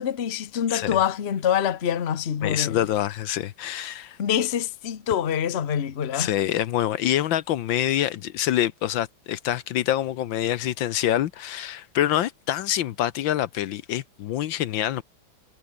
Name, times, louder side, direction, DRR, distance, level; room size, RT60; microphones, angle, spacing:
voice 1, 0.0-2.8 4.2-6.3, left 9 dB, 40° left, 1.1 m, -25 dB
voice 2, 2.4-4.2 6.1-15.0, left 12 dB, 75° left, 1.5 m, -26 dB
omnidirectional pair, 2.2 m